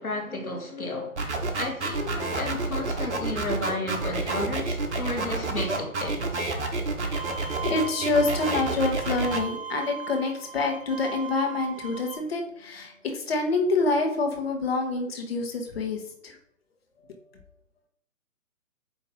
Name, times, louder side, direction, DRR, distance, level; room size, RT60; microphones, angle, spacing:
voice 1, 0.0-6.5 7.2-7.4, left 2 dB, 85° left, 1.9 m, -33 dB
sound 1, 1.2-9.4, right 3 dB, 55° right, 1.2 m, -29 dB
Bowed string instrument, 7.1-12.1, right 7 dB, 25° right, 0.5 m, -38 dB
voice 2, 7.6-16.3, left 3 dB, 45° left, 1.3 m, -27 dB
8.7 x 3.1 x 3.9 m
figure-of-eight pair, 140°, 42 cm